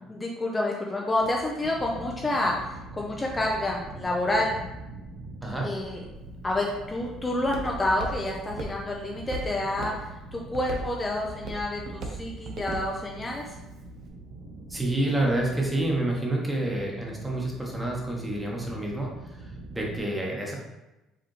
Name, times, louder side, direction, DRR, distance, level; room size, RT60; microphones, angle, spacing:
voice 1, 0.1-2.6 2.9-4.6 5.6-6.0 6.4-9.9 10.3-13.6, left 1 dB, 20° left, -1 dB, 0.6 m, -28 dB
sound 1, 1.2-20.0, right 2 dB, 90° right, 1.1 m, -44 dB
Walk footsteps, 6.1-14.1, right 2 dB, 60° right, 0.8 m, -40 dB
voice 2, 14.7-19.4 19.7-20.6, right 1 dB, 5° right, -2 dB, 1.2 m, -28 dB
4.9 x 3.4 x 3.2 m, 1.0 s
cardioid pair, 105°, 0 cm